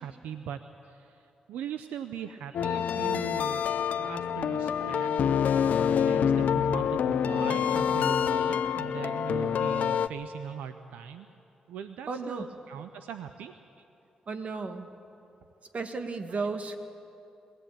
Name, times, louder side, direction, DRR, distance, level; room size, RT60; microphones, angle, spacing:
voice 1, 0.0-11.3 11.7-13.6 16.3-16.5, right 8 dB, 90° right, 9 dB, 0.6 m, -40 dB
sound 1, 2.5-10.1, left 8 dB, 75° left, 0.6 m, -26 dB
voice 2, 12.1-12.5 14.3-14.9 15.7-16.8, right 4 dB, 55° right, 6 dB, 1.9 m, -34 dB
22.0 x 16.5 x 9.0 m, 2.7 s
supercardioid pair, 50°, 3 cm